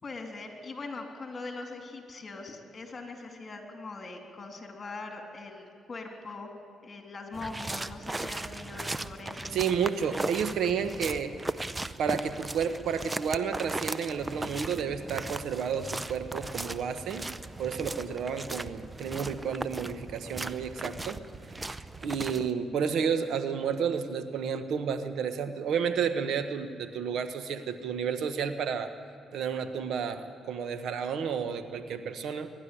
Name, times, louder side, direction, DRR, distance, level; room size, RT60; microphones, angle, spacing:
voice 1, 0.0-6.5 6.8-9.6, left 3 dB, 35° left, 3 dB, 3.3 m, -41 dB
sound 1, 7.3-22.5, right 2 dB, 20° right, 0.6 m, -37 dB
voice 2, 9.5-11.3 12.0-17.2 17.6-21.2 21.5-28.9 29.3-32.5, right 7 dB, 75° right, 9 dB, 1.2 m, -31 dB
21.5 x 12.0 x 10.0 m, 2.4 s
cardioid pair, 90°, 0 cm